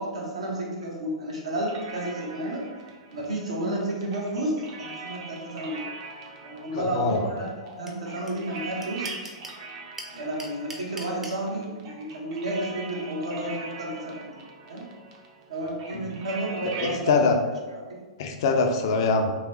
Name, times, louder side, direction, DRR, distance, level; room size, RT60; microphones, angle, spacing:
voice 1, 0.0-2.7 3.1-5.8 6.4-9.1 10.1-14.3 14.7-14.8 15.5-17.3 17.9-18.0, right 1 dB, 75° right, -3 dB, 1.0 m, -31 dB
sound 1, 1.6-17.0, right 3 dB, 45° right, 0.7 m, -42 dB
voice 2, 6.7-7.3 15.9-16.1 16.8-17.4 18.2-19.3, left 4 dB, 50° left, 5 dB, 0.4 m, -23 dB
sound 2, 7.9-8.0 8.3-8.4 8.6-9.6 10.0-11.4, right 1 dB, 10° right, 0.5 m, -39 dB
3.2 x 3.0 x 3.0 m, 1.3 s
figure-of-eight pair, 105°, 3 cm